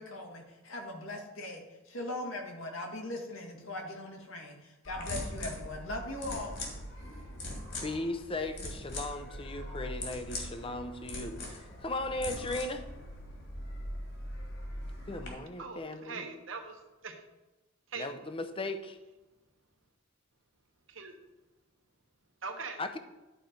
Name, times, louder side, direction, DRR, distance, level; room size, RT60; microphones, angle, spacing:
voice 1, 0.0-6.5 7.0-7.1, left 1 dB, 80° left, 1 dB, 1.8 m, -40 dB
sound 1, 4.8-15.3, left 1 dB, 60° left, 2.4 m, -41 dB
voice 2, 7.7-12.8 15.0-16.3 18.0-19.0 22.8-23.0, left 2 dB, 25° left, 9 dB, 0.6 m, -37 dB
voice 3, 15.6-17.2 17.9-18.0 20.9-21.1 22.4-22.8, right 4 dB, 70° right, 4 dB, 1.2 m, -41 dB
11.5 x 4.4 x 5.1 m, 1.1 s
head